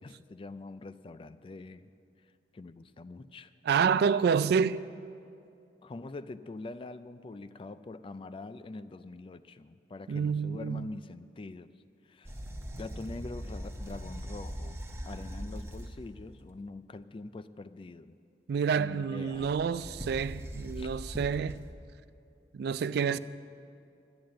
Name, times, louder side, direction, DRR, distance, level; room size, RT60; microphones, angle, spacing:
voice 1, 0.0-1.9 2.5-3.5 5.8-11.7 12.1-12.4 12.8-14.8 15.1-18.2 18.8-19.5 20.8-20.9 23.1-23.2, left 2 dB, 30° left, 0.3 m, -44 dB
voice 2, 3.6-4.8 10.1-10.9 18.5-21.6 22.5-23.2, right 6 dB, 60° right, 0.3 m, -28 dB
sound 1, 12.2-16.1 19.3-21.7, equal, 15° right, 0.9 m, -41 dB
11.5 x 8.8 x 7.6 m
head